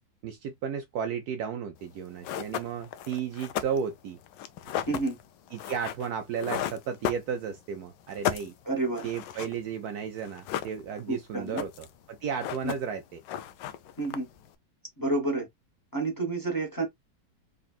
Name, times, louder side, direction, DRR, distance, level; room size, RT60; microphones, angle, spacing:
voice 1, 0.2-4.2 5.5-8.5 9.0-13.2, right 7 dB, 70° right, 1.0 m, -34 dB
sound 1, 1.8-1.9 2.2-7.7 8.0-9.9 10.2-11.1 11.4-12.0 12.2-13.0 13.2-14.5, left 10 dB, 85° left, 1.3 m, -35 dB
voice 2, 4.9-5.2 8.6-9.1 11.1-11.6 12.6-12.7 14.0-14.3 15.0-15.5 15.9-16.8, right 2 dB, 15° left, 1.2 m, -29 dB
3.8 x 3.4 x 2.3 m
omnidirectional pair, 1.9 m